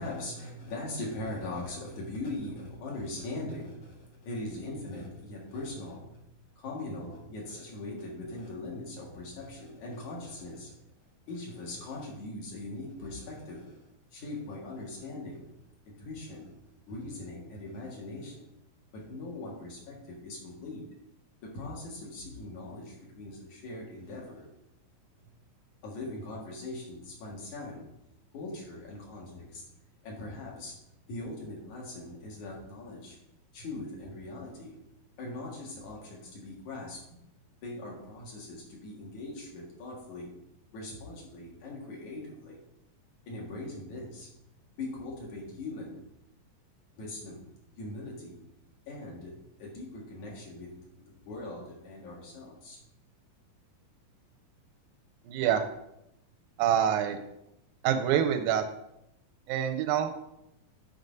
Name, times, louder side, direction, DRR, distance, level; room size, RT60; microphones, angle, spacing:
voice 1, 0.0-10.8 11.3-13.8 14.1-15.5 15.9-16.5 16.9-18.5 18.9-20.9 21.4-24.5 25.8-27.8 28.3-29.6 30.0-33.2 33.5-34.8 35.2-37.2 37.6-40.3 40.7-42.6 43.3-44.3 44.8-46.0 47.0-47.5 47.8-48.4 48.9-52.8, left 2 dB, 55° left, -3 dB, 3.0 m, -41 dB
voice 2, 55.3-55.6 56.6-57.2 57.8-58.6 59.5-60.1, right 9 dB, 85° right, 8 dB, 2.3 m, -26 dB
9.7 x 4.0 x 5.2 m, 0.82 s
omnidirectional pair, 4.2 m